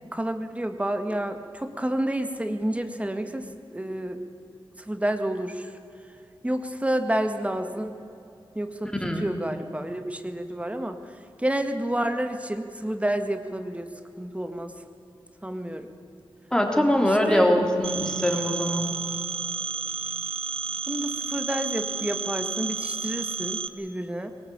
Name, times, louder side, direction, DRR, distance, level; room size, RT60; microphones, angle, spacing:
voice 1, 0.1-4.2 4.9-5.7 6.4-8.0 8.5-8.9 9.2-11.0 11.4-13.9 14.2-14.7 15.4-15.9 17.0-17.5 20.9-24.3, right 1 dB, 15° right, 7 dB, 1.8 m, -29 dB
voice 2, 16.5-18.9, equal, 10° left, 2 dB, 3.4 m, -22 dB
Telephone, 17.8-23.7, right 6 dB, 80° right, 1.1 m, -31 dB
22.0 x 19.5 x 8.7 m, 2.8 s
wide cardioid pair, 95°, 9 cm